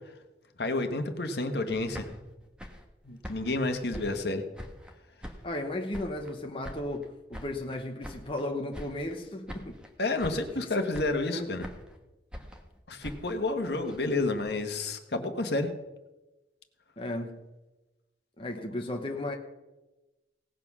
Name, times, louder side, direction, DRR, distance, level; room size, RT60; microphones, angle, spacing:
voice 1, 0.6-2.1 3.0-4.4 10.0-11.7 12.9-15.7, left 2 dB, 70° left, 6 dB, 1.4 m, -30 dB
sound 1, 1.7-4.9 5.2-6.4 6.6-8.4 8.7-9.2 9.5-9.9 10.2-10.6 10.9-12.0 12.3-14.5, equal, 5° right, 1.2 m, -45 dB
voice 2, 5.4-9.8 11.3-11.5 17.0-17.4 18.4-19.3, left 1 dB, 30° left, 3 dB, 1.0 m, -35 dB
17.5 x 7.7 x 6.1 m, 1.1 s
head